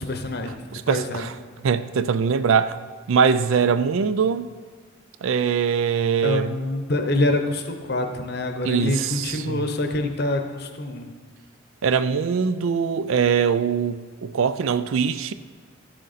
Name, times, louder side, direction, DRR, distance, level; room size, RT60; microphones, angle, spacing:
voice 1, 0.0-0.6 0.9-1.3 6.2-11.1, left 2 dB, 50° left, 0.8 m, -26 dB
voice 2, 0.7-1.3 1.6-2.8 3.1-4.5 5.2-6.6 8.6-9.6 11.8-15.3, right 6 dB, 80° right, 0.4 m, -22 dB
13.5 x 6.5 x 4.1 m
head